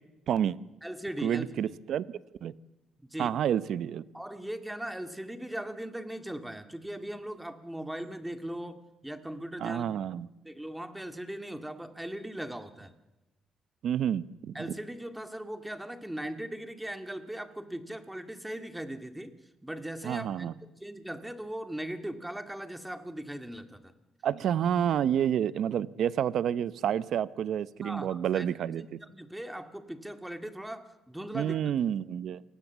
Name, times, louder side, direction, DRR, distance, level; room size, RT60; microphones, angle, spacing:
voice 1, 0.3-0.6 1.2-2.0 2.4-2.5 3.2-4.0 9.6-10.3 13.8-14.7 20.0-20.5 24.2-29.0 31.3-32.4, right 9 dB, 70° right, 16 dB, 0.8 m, -29 dB
voice 2, 0.8-1.7 3.0-3.3 4.1-9.8 10.4-12.9 14.5-19.4 19.6-23.9 27.8-28.5 29.0-31.6, right 1 dB, 5° right, 8 dB, 2.1 m, -39 dB
28.5 x 19.0 x 7.4 m, 1.0 s
cardioid pair, 90°, 0 cm